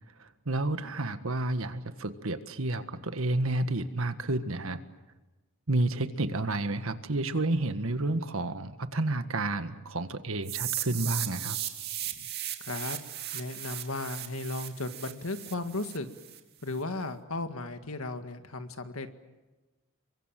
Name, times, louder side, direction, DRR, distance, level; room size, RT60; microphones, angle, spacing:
voice 1, 0.2-4.8 5.7-11.6, right 2 dB, 75° right, 10 dB, 1.6 m, -30 dB
sound 1, 10.4-16.4, right 12 dB, 50° right, 2.6 m, -36 dB
voice 2, 12.6-13.0 13.3-16.1 16.6-19.1, left 2 dB, 80° left, 7 dB, 2.0 m, -35 dB
29.5 x 23.5 x 7.7 m, 1.1 s
head